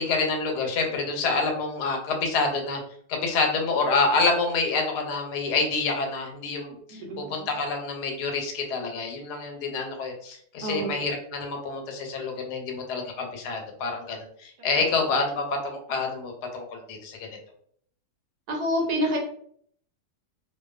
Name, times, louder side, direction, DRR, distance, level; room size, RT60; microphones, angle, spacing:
voice 1, 0.0-2.8 3.1-17.2, left 3 dB, 85° left, 3 dB, 1.2 m, -27 dB
voice 2, 6.9-7.6 10.6-11.1 14.6-15.0 18.5-19.2, equal, 75° right, 0 dB, 1.1 m, -29 dB
2.5 x 2.3 x 2.3 m, 0.63 s
omnidirectional pair, 1.7 m